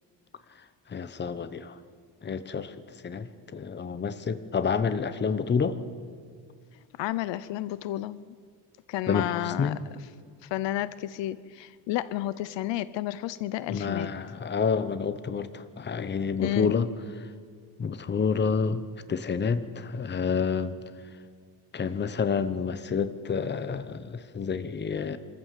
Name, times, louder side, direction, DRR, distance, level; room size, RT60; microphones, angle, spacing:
voice 1, 0.9-1.8 2.2-2.7 3.0-5.8 9.1-9.8 13.7-16.9 17.8-18.8 19.1-20.7 21.7-25.2, left 6 dB, 25° left, 12 dB, 0.9 m, -29 dB
voice 2, 7.0-8.3 8.9-9.7 10.4-14.1 16.4-16.9, left 14 dB, 85° left, 17 dB, 0.8 m, -31 dB
25.5 x 14.5 x 7.6 m, 2.1 s
cardioid pair, 140°, 43 cm